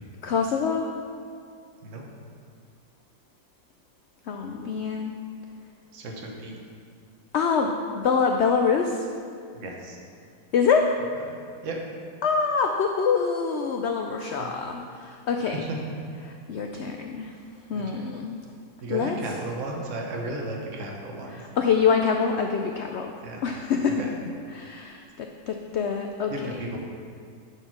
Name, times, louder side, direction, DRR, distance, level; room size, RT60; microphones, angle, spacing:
voice 1, 0.2-0.9 4.3-5.1 7.3-9.1 10.5-10.9 12.2-15.7 16.5-17.3 17.7-18.4 18.9-19.2 21.4-23.1 23.4-24.0 24.5-26.5, left 5 dB, 75° left, 3 dB, 0.6 m, -25 dB
voice 2, 5.9-6.5 9.5-10.0 11.6-11.8 14.4-14.5 15.5-15.8 17.7-18.0 18.8-21.4 23.2-23.4 24.0-24.1 26.3-26.8, right 2 dB, 55° right, 0 dB, 1.3 m, -34 dB
9.7 x 4.7 x 5.9 m, 2.3 s
omnidirectional pair, 1.7 m